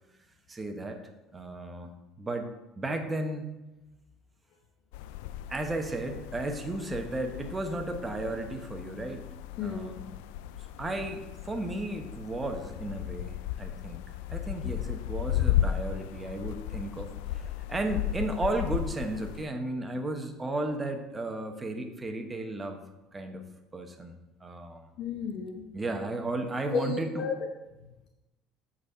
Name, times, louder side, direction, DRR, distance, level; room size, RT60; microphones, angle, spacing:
voice 1, 0.5-1.0 1.3-3.5 5.5-9.3 9.6-10.2 10.8-14.0 14.3-22.8 23.1-23.4 23.7-24.9 25.7-27.2, right 2 dB, 20° right, 5 dB, 1.1 m, -34 dB
sound 1, 4.9-19.4, left 12 dB, 85° left, 0.3 m, -35 dB
voice 2, 9.6-9.9 25.0-25.7 26.7-27.5, left 6 dB, 60° left, 3 dB, 0.9 m, -32 dB
8.3 x 4.2 x 6.2 m, 1.0 s
supercardioid pair, 110°, 0 cm